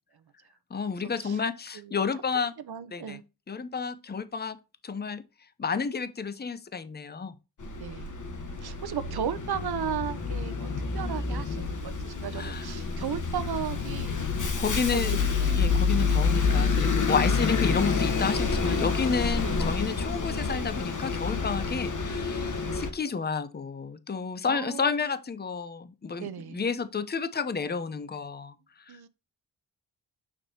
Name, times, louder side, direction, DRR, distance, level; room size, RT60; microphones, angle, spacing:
voice 1, 0.7-2.5 2.9-3.2 3.5-4.6 4.8-5.2 5.6-7.4 12.3-12.7 14.6-15.2 15.5-28.5 28.9-29.1, left 5 dB, 25° left, 0.7 m, -31 dB
voice 2, 2.3-3.2 7.8-8.1 8.6-10.7 10.9-14.3 14.5-15.7 19.4-19.6 22.6-22.8 24.5-25.1 26.2-26.6 28.9-29.1, right 8 dB, 65° right, 0.8 m, -36 dB
Bus, 7.6-22.9, left 4 dB, 45° left, 1.3 m, -28 dB
6.4 x 6.1 x 2.8 m
cardioid pair, 75°, 41 cm